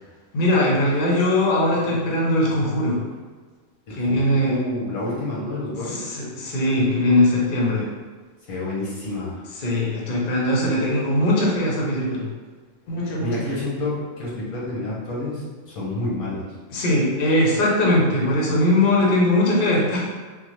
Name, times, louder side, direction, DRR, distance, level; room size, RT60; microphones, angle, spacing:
voice 1, 0.3-3.0 3.9-4.6 5.9-7.8 9.6-12.2 12.9-13.3 16.7-20.1, left 1 dB, 50° left, -4 dB, 0.7 m, -20 dB
voice 2, 3.9-6.0 8.4-9.4 13.2-16.5, left 2 dB, 85° left, -6 dB, 1.4 m, -29 dB
3.6 x 2.0 x 3.0 m, 1.4 s
omnidirectional pair, 1.4 m